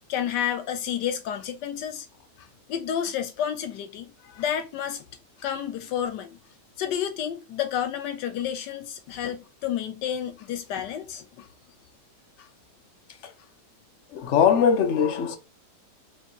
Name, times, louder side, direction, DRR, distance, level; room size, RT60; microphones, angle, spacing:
voice 1, 0.1-2.1 2.7-4.1 4.4-5.0 5.4-6.4 6.8-11.4, left 9 dB, 90° left, 1.4 m, -30 dB
voice 2, 14.1-15.4, left 7 dB, 55° left, 0.9 m, -22 dB
4.6 x 3.0 x 2.9 m
omnidirectional pair, 1.8 m